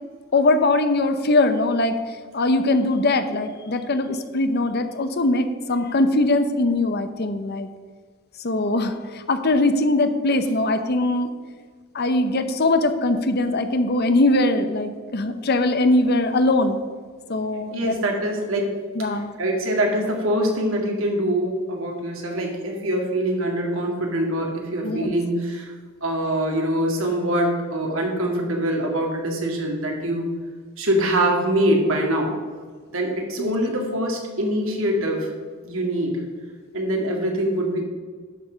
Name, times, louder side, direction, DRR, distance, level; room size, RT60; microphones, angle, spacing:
voice 1, 0.3-2.0 2.3-7.7 8.4-11.3 11.9-16.8 17.3-18.0 19.0-19.3 24.8-25.2 33.4-33.5, left 2 dB, 50° left, 9 dB, 0.8 m, -21 dB
voice 2, 17.7-18.7 19.1-25.7 26.0-30.3 30.8-32.3 32.9-35.3 35.6-36.2 36.7-37.8, right 1 dB, 75° right, 1 dB, 2.2 m, -24 dB
11.0 x 6.4 x 5.1 m, 1.5 s
head